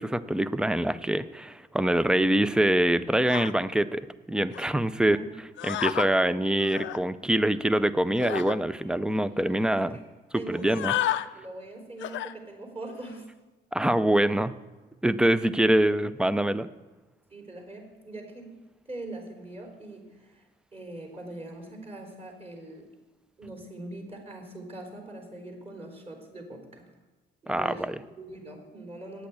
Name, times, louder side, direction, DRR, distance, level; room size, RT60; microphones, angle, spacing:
voice 1, 0.0-5.2 5.6-10.0 10.5-10.9 13.7-14.5 15.0-16.7 27.5-28.0, right 1 dB, 5° right, 15 dB, 0.5 m, -24 dB
sound 1, 3.3-3.5 4.5-4.7 5.6-6.1 6.6-7.0 8.2-8.6 9.2-9.3 9.5-9.7 10.6-11.3 12.0-12.3 12.9-13.2, left 13 dB, 70° left, 0.5 m, -31 dB
voice 2, 10.3-10.9 11.3-13.3 15.4-15.5 17.3-18.6 18.9-20.4 20.7-22.9 23.4-26.9 27.4-27.9 28.2-29.3, right 2 dB, 30° right, 2 dB, 4.1 m, -42 dB
9.5 x 8.4 x 8.6 m, 1.2 s
cardioid pair, 90°, 20 cm